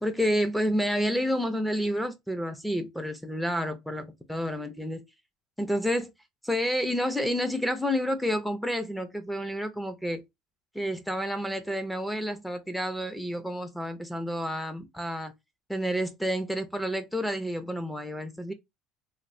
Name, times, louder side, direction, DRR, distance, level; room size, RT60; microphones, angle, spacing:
voice 1, 0.0-5.0 5.6-6.1 6.4-10.2 10.7-15.3 15.7-18.5, equal, ahead, 0.4 m, -29 dB
3.1 x 2.0 x 2.5 m
cardioid pair, 150°, 0 cm